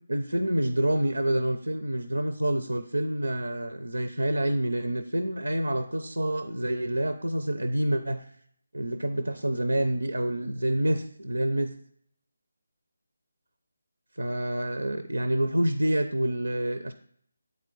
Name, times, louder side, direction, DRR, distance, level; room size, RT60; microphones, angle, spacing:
voice 1, 0.0-8.3 8.7-11.7 14.2-16.9, right 1 dB, 85° right, 10 dB, 0.5 m, -27 dB
8.1 x 4.2 x 3.8 m, 0.65 s
figure-of-eight pair, 155°, 0 cm